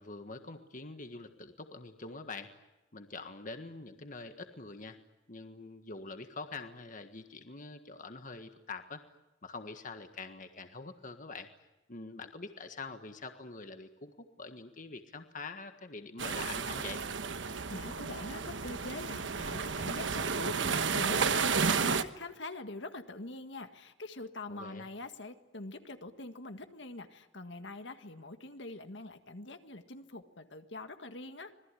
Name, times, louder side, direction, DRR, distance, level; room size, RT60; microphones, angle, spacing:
voice 1, 0.0-2.5 2.9-5.0 5.3-9.0 9.4-11.5 11.9-14.1 14.4-17.0 24.5-24.9, left 3 dB, 45° left, 7 dB, 1.6 m, -45 dB
sound 1, 16.2-22.0, right 5 dB, 85° right, 1.2 m, -32 dB
voice 2, 17.4-31.5, left 2 dB, 70° left, 7 dB, 1.8 m, -44 dB
26.5 x 20.0 x 9.9 m, 1.0 s
head